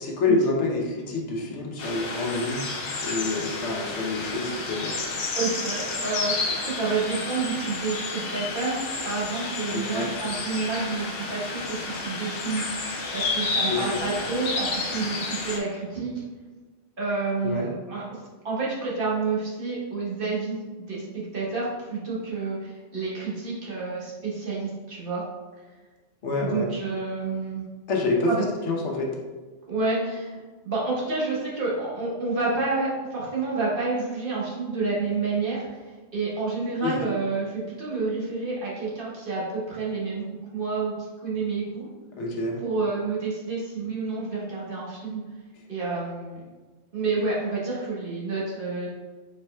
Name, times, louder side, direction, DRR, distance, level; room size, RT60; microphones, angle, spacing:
voice 1, 0.0-2.7 3.0-5.0 9.7-10.1 13.7-14.0 17.4-17.7 26.2-26.7 27.9-28.3 28.7-29.2 36.8-37.0 42.2-42.6, left 3 dB, 75° left, 0 dB, 1.1 m, -27 dB
sound 1, 1.8-15.6, left 3 dB, 60° left, 0.7 m, -31 dB
voice 2, 5.4-16.2 17.0-18.0 18.4-25.2 26.4-27.6 28.3-28.4 29.7-35.7 36.1-40.3 40.5-40.9 41.2-41.9 42.6-45.2 45.7-46.4 46.9-48.9, right 3 dB, 50° right, -6 dB, 1.2 m, -29 dB
4.3 x 4.0 x 2.2 m, 1.3 s
omnidirectional pair, 1.2 m